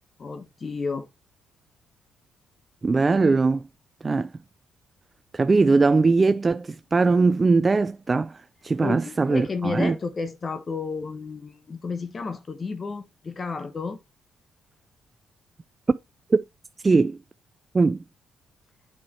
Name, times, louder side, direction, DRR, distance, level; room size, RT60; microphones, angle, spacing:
voice 1, 0.2-1.1 8.8-14.0, left 4 dB, 35° left, 1.0 m, -32 dB
voice 2, 2.8-3.6 4.0-4.3 5.3-10.0 15.9-16.0 16.3-16.4 16.8-17.2 17.7-18.0, right 3 dB, 30° right, 0.3 m, -20 dB
7.0 x 4.7 x 4.3 m
cardioid pair, 90°, 0 cm